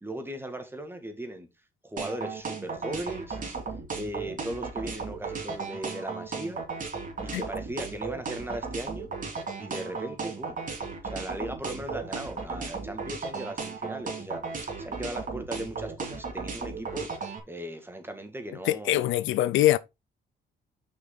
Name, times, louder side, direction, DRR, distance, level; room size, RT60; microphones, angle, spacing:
voice 1, 0.0-1.5 1.8-3.5 4.0-6.6 7.2-9.1 9.6-10.6 11.0-14.4 14.8-19.3, right 1 dB, 10° right, 2.1 m, -37 dB
sound 1, 2.0-17.4, right 4 dB, 45° right, 2.6 m, -35 dB
voice 2, 18.7-19.8, left 14 dB, 80° left, 0.5 m, -23 dB
6.6 x 5.7 x 3.9 m
cardioid pair, 90°, 20 cm